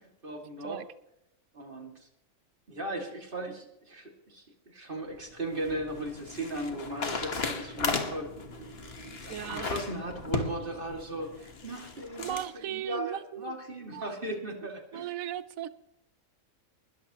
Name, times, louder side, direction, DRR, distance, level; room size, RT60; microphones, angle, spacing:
voice 1, 0.2-0.8 1.5-2.1 2.7-8.3 9.1-15.1, right 1 dB, 40° right, 2 dB, 2.6 m, -37 dB
sound 1, 5.1-12.5, left 3 dB, 45° left, 1.7 m, -36 dB
voice 2, 9.3-9.7 12.2-13.5 13.9-14.5 14.9-15.7, right 11 dB, 80° right, 15 dB, 1.1 m, -37 dB
20.5 x 12.5 x 3.0 m, 0.81 s
omnidirectional pair, 1.4 m